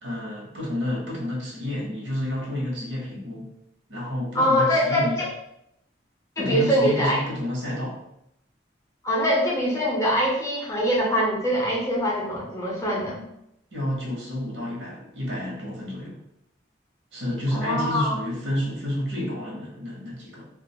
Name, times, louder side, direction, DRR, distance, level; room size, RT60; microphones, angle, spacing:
voice 1, 0.0-3.5 3.9-5.2 6.4-8.0 13.7-16.2 17.1-20.5, left 1 dB, 85° right, -3 dB, 0.9 m, -30 dB
voice 2, 4.3-5.3 6.4-7.2 9.0-13.2 17.5-18.2, equal, 15° left, -4 dB, 0.5 m, -23 dB
2.4 x 2.2 x 2.8 m, 0.79 s
head